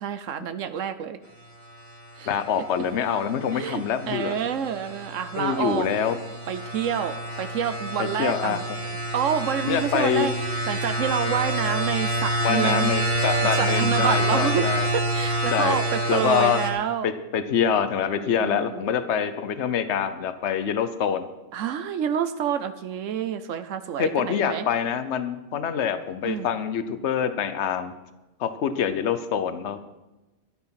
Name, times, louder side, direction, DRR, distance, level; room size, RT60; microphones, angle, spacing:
voice 1, 0.0-1.2 2.2-2.3 3.5-5.9 6.5-8.6 9.1-10.3 10.7-12.9 13.5-14.7 14.9-17.1 18.2-18.9 21.5-24.7 26.2-26.5, right 8 dB, 80° right, 10 dB, 1.1 m, -28 dB
sound 1, 2.0-16.7, right 1 dB, 35° right, 2.5 m, -27 dB
voice 2, 2.3-4.3 5.4-6.2 8.0-8.8 9.6-10.3 12.4-14.9 15.5-15.8 16.1-16.6 17.0-21.3 24.0-27.9 28.4-29.8, left 8 dB, 65° left, 11 dB, 1.1 m, -25 dB
12.0 x 11.5 x 5.8 m, 1.1 s
omnidirectional pair, 1.3 m